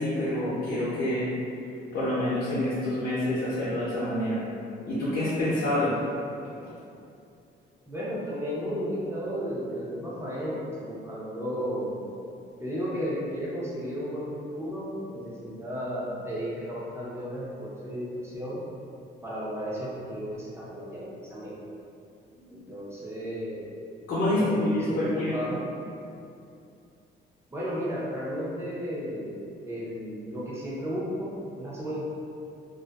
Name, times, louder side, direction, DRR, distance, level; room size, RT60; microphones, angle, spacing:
voice 1, 0.0-1.3 1.9-4.4 4.9-5.9 22.3-22.5 24.1-25.5, left 1 dB, 65° left, -10 dB, 0.7 m, -27 dB
voice 2, 7.8-12.1 12.6-18.6 19.2-21.7 22.5-23.7 24.3-25.6 27.5-32.0, equal, 15° right, -7 dB, 0.7 m, -34 dB
2.5 x 2.4 x 2.3 m, 2.5 s
cardioid pair, 90°, 20 cm